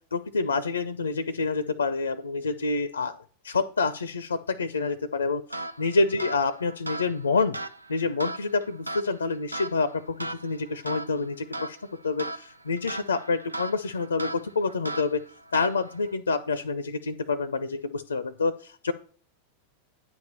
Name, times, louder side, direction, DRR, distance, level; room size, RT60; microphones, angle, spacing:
voice 1, 0.1-3.2 3.4-7.6 7.9-11.8 12.0-15.2 15.5-18.9, left 4 dB, 75° left, 15 dB, 0.4 m, -27 dB
sound 1, 5.5-16.1, right 2 dB, 85° right, 0.4 m, -38 dB
9.3 x 3.5 x 6.7 m, 0.43 s
figure-of-eight pair, 90°, 0 cm